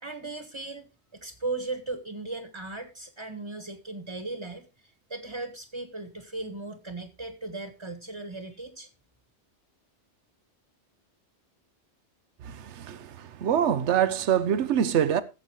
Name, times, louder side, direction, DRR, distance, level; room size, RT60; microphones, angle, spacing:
voice 1, 0.0-8.9, right 3 dB, 25° right, 1.3 m, -37 dB
voice 2, 12.4-15.2, right 9 dB, 80° right, 1.1 m, -25 dB
17.5 x 8.0 x 3.0 m
omnidirectional pair, 1.2 m